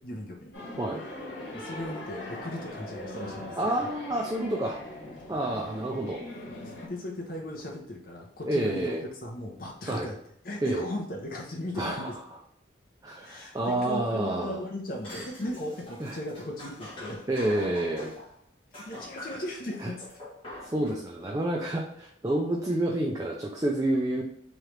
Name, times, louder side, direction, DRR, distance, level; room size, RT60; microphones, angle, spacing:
voice 1, 0.0-0.6 1.5-3.8 6.6-8.9 9.2-10.2 10.4-12.2 13.2-17.3 18.7-20.1, left 1 dB, 50° left, 0 dB, 0.6 m, -37 dB
sound 1, 0.5-6.9, left 1 dB, 80° left, 1.2 m, -41 dB
voice 2, 3.6-4.8 5.3-6.2 8.5-9.0 9.9-10.1 10.6-10.8 11.8-12.1 13.0-14.6 16.0-16.2 17.3-18.1 19.8-19.9 20.7-24.2, right 1 dB, 20° right, -2 dB, 0.4 m, -29 dB
sound 2, 14.9-18.4 18.7-21.1, left 1 dB, 30° left, 1.4 m, -44 dB
3.7 x 3.1 x 3.2 m, 0.71 s
head